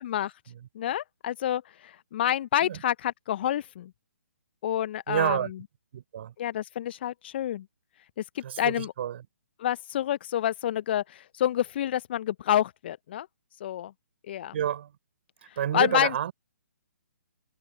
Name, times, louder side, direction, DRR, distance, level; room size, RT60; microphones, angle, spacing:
voice 1, 0.7-3.9 4.6-5.4 6.4-7.6 8.3-8.9 9.6-13.3 13.6-13.9 14.3-14.5 15.7-16.1, left 11 dB, 40° left, 0.8 m, -28 dB
voice 2, 5.1-5.5 5.9-6.3 8.4-9.2 14.5-14.9 15.6-16.3, right 10 dB, 45° right, 6.1 m, -29 dB
figure-of-eight pair, 135°, 8 cm